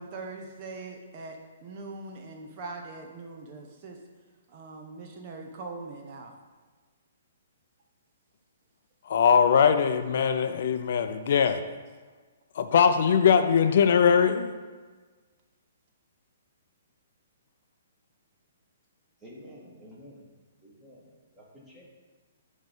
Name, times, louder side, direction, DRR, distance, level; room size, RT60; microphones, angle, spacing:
voice 1, 0.0-4.0 4.5-6.3, right 3 dB, 40° right, 2 dB, 0.8 m, -41 dB
voice 2, 9.1-11.6 12.6-14.5, left 7 dB, 60° left, 9 dB, 0.4 m, -21 dB
voice 3, 19.2-20.3 20.6-21.1 21.4-21.8, equal, 10° right, -5 dB, 1.9 m, -49 dB
8.9 x 3.1 x 5.3 m, 1.4 s
hypercardioid pair, 140°, 0 cm